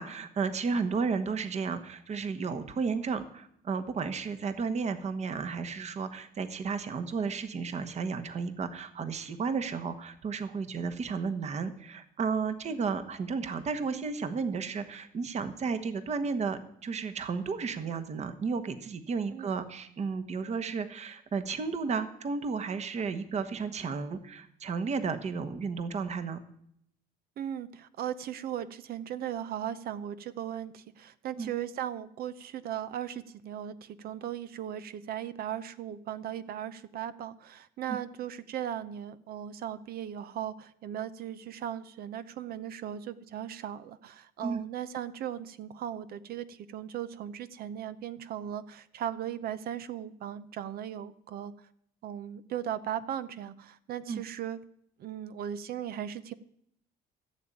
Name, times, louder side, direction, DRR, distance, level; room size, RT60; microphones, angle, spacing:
voice 1, 0.0-26.4 31.4-31.5 37.9-38.0 44.4-44.6 54.1-54.2, right 5 dB, 40° right, 11 dB, 1.3 m, -33 dB
voice 2, 27.4-51.5 52.0-54.6 55.0-56.3, right 10 dB, 65° right, 13 dB, 0.8 m, -37 dB
14.0 x 7.1 x 9.0 m, 0.70 s
cardioid pair, 110°, 17 cm